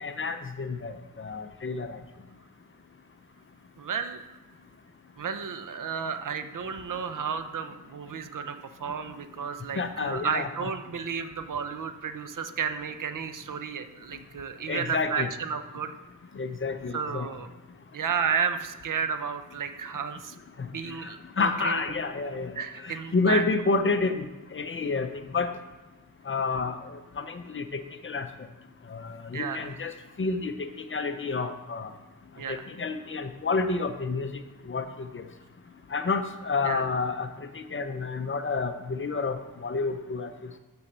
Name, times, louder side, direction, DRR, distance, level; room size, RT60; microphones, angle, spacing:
voice 1, 0.0-2.0 9.8-10.7 14.7-15.3 16.4-17.3 20.6-20.7 21.0-21.1 21.4-22.5 22.8-24.3 24.5-25.1 25.3-25.5 26.3-28.3 28.9-29.9 30.2-31.9 32.5-34.3 34.7-34.9 35.1-35.2 35.9-37.3 37.5-40.3, left 4 dB, 35° left, 8 dB, 0.5 m, -29 dB
voice 2, 3.8-4.2 5.2-15.9 16.9-17.5 17.9-20.4 20.7-21.8 22.6-23.4 29.3-29.7 32.4-32.6 36.6-36.8, right 6 dB, 65° right, 9 dB, 0.7 m, -32 dB
7.1 x 6.2 x 6.7 m, 1.2 s
wide cardioid pair, 170°, 35 cm